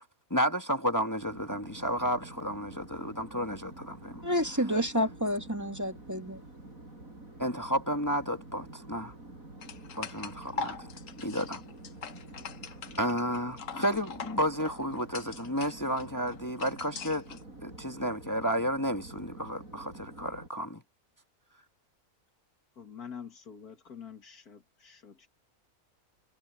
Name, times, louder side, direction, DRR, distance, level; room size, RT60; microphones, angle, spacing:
voice 1, 0.3-4.2 7.4-9.1 10.0-10.9 11.2-11.6 12.9-20.8, equal, 15° left, 1.5 m, -32 dB
sound 1, 1.2-20.5, right 2 dB, 65° right, 6.6 m, -48 dB
voice 2, 4.2-6.4, equal, 10° right, 2.0 m, -29 dB
sound 2, 9.6-17.4, left 6 dB, 60° left, 1.5 m, -42 dB
voice 3, 22.8-25.3, left 7 dB, 85° left, 2.5 m, -46 dB
omnidirectional pair, 1.6 m